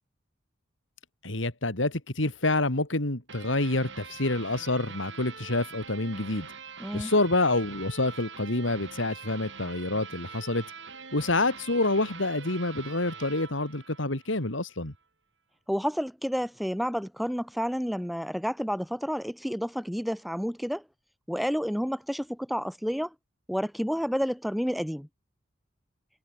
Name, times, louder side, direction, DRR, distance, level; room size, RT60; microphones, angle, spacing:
voice 1, 1.2-6.5 6.9-10.6 11.1-14.9, left 2 dB, 80° left, 3.2 m, -27 dB
sound 1, 3.3-14.6, right 5 dB, 65° right, 4.1 m, -44 dB
voice 2, 6.8-7.1 15.7-20.8 21.3-23.1 23.5-25.1, equal, ahead, 4.1 m, -30 dB
head